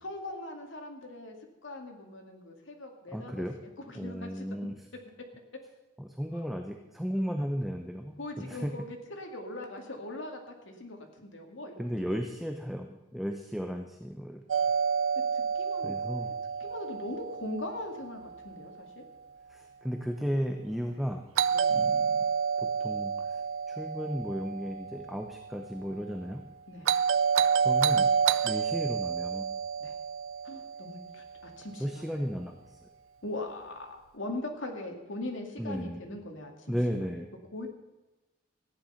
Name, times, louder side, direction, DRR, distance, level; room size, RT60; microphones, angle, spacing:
voice 1, 0.0-1.4 1.6-3.4 3.9-4.5 6.3-6.4 8.2-11.9 15.3-16.2 16.6-19.0 21.5-21.7 26.7-26.9 29.8-30.0 30.4-32.2 33.2-36.7 37.1-37.2 37.5-37.7, left 2 dB, 75° left, 3 dB, 2.2 m, -40 dB
voice 2, 3.1-3.5 3.9-4.9 6.0-8.7 11.8-14.4 15.8-16.3 19.5-21.3 21.7-22.3 22.6-23.4 23.7-26.5 27.6-28.1 28.4-29.5 31.7-32.6 35.6-36.1 36.7-37.3, equal, ahead, 4 dB, 0.7 m, -34 dB
Doorbell, 14.5-18.5 21.4-25.6 26.8-31.3, right 6 dB, 80° right, 0.4 m, -29 dB
14.5 x 10.0 x 5.7 m, 1.1 s
head